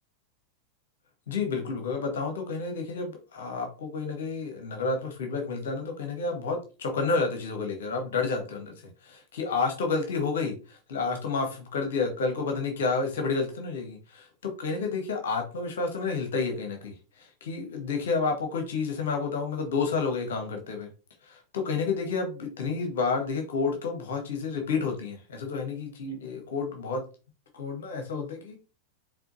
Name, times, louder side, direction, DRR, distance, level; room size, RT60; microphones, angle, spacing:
voice 1, 1.3-8.7 9.0-14.3 14.6-20.9 21.3-27.0 27.5-28.6, left 4 dB, 60° left, 4 dB, 1.0 m, -30 dB
4.9 x 3.5 x 2.6 m, 0.33 s
figure-of-eight pair, 90°, 0 cm